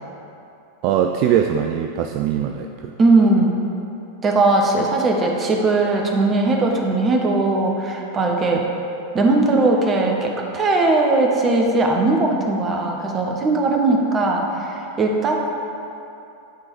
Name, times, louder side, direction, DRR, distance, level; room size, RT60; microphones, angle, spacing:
voice 1, 0.8-2.9, right 9 dB, 45° right, 5 dB, 0.3 m, -21 dB
voice 2, 3.0-3.6 4.2-8.7 9.1-15.4, right 2 dB, 25° right, 0 dB, 1.0 m, -19 dB
10.5 x 3.8 x 4.6 m, 2.8 s
figure-of-eight pair, 90°, 0 cm